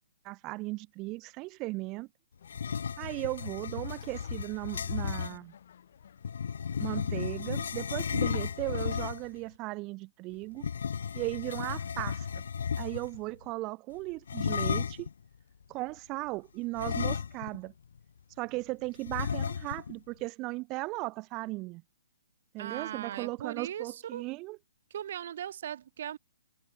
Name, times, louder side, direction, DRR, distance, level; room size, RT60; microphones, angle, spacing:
voice 1, 0.2-2.1 3.0-5.5 6.8-10.7 11.1-12.4 12.8-15.1 15.7-17.7 18.4-21.8 22.5-24.6, right 23 dB, 20° right, 0.4 m, -37 dB
sound 1, 2.4-5.4 6.2-9.4 10.6-13.2 14.3-15.1 16.8-17.7 18.0-18.1 19.1-19.9, left 7 dB, 70° left, 1.4 m, -34 dB
sound 2, 2.4-8.9, left 9 dB, 55° left, 5.9 m, -56 dB
voice 2, 22.6-24.2 24.9-26.2, right 10 dB, 50° right, 3.3 m, -38 dB
hypercardioid pair, 165°, 0 cm